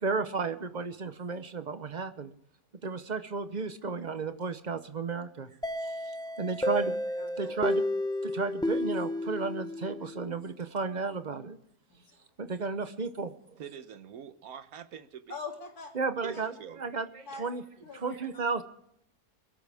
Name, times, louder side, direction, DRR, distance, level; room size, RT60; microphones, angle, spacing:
voice 1, 0.0-2.3 2.8-5.5 6.4-6.9 7.4-7.8 8.2-11.6 12.4-13.3 16.0-16.5 16.8-17.6 18.0-18.6, right 4 dB, 40° right, 10 dB, 0.7 m, -33 dB
sound 1, 5.6-10.3, left 1 dB, 5° left, 0.5 m, -32 dB
voice 2, 7.2-7.6 11.9-12.3 15.3-15.9 16.3-16.4 17.3-17.4 17.8-18.5, left 4 dB, 70° left, 1 dB, 3.4 m, -43 dB
voice 3, 13.6-15.4 16.2-17.1 18.0-18.1, right 8 dB, 65° right, 12 dB, 1.4 m, -45 dB
22.5 x 12.5 x 3.5 m, 0.72 s
omnidirectional pair, 1.7 m